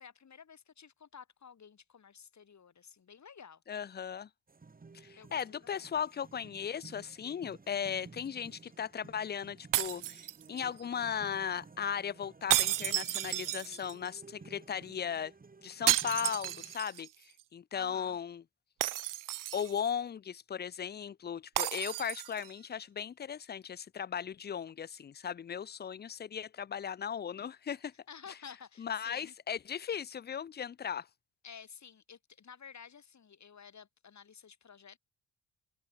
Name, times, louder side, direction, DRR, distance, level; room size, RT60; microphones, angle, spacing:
voice 1, 0.0-3.6 5.2-5.7 17.7-18.2 28.1-29.3 31.4-35.0, left 7 dB, 45° left, 7.0 m, -52 dB
voice 2, 3.7-4.3 4.9-15.3 15.6-17.1 17.5-18.4 19.5-27.9 28.8-31.1, left 8 dB, 25° left, 0.4 m, -37 dB
sound 1, 4.5-16.8, right 4 dB, 20° right, 2.1 m, -55 dB
sound 2, 9.7-10.8 12.5-14.1 15.9-17.1 17.4-17.5 18.8-19.9 21.6-22.5, right 14 dB, 55° right, 0.5 m, -32 dB
cardioid pair, 135°, 39 cm